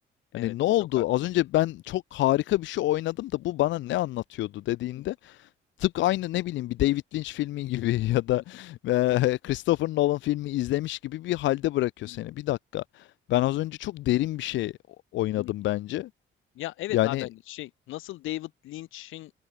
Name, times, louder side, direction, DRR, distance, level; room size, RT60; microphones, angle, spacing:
voice 1, 0.3-5.5 5.8-14.7 15.1-16.1 16.9-17.3, left 16 dB, 70° left, 0.4 m, -27 dB
voice 2, 16.5-19.3, left 16 dB, 85° left, 1.1 m, -37 dB
cardioid pair, 90°, 20 cm